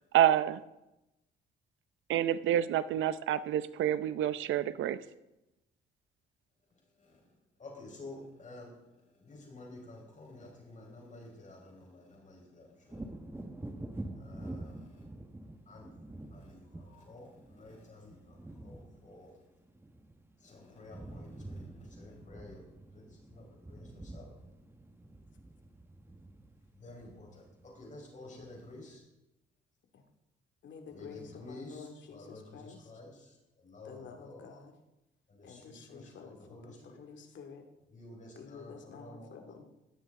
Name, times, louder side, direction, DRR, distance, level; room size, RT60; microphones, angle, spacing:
voice 1, 0.1-0.6 2.1-5.0, right 11 dB, 80° right, 15 dB, 0.7 m, -28 dB
voice 2, 7.6-8.7 9.2-13.0 14.2-15.0 15.7-15.9 16.3-19.3 20.4-22.6 22.9-24.3 26.7-27.4 27.7-29.0 30.9-33.3 33.6-34.5 35.3-37.0 37.9-39.5, left 2 dB, 40° left, -1 dB, 4.7 m, -51 dB
Wind / Thunder, 12.9-20.5 20.7-28.0 28.4-28.5, right 1 dB, 10° right, 1.4 m, -47 dB
voice 3, 30.6-32.9 33.8-34.7 35.4-36.4 36.6-37.6 38.4-39.6, left 6 dB, 65° left, 4 dB, 2.3 m, -49 dB
16.5 x 13.5 x 3.7 m, 0.93 s
cardioid pair, 90°, 20 cm